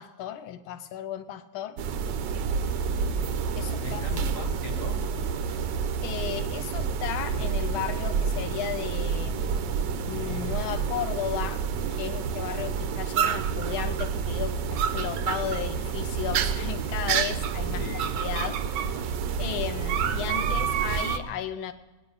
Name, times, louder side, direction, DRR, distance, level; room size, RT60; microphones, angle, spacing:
voice 1, 0.0-1.8 3.5-4.0 6.0-9.4 10.1-17.8 18.2-19.0 19.4-21.7, left 10 dB, 85° left, 11 dB, 1.5 m, -34 dB
sound 1, 1.8-21.2, right 6 dB, 70° right, 1.3 m, -28 dB
voice 2, 3.8-5.1 17.7-18.1, left 4 dB, 60° left, 5 dB, 0.9 m, -39 dB
20.5 x 9.6 x 5.4 m, 1.2 s
omnidirectional pair, 2.2 m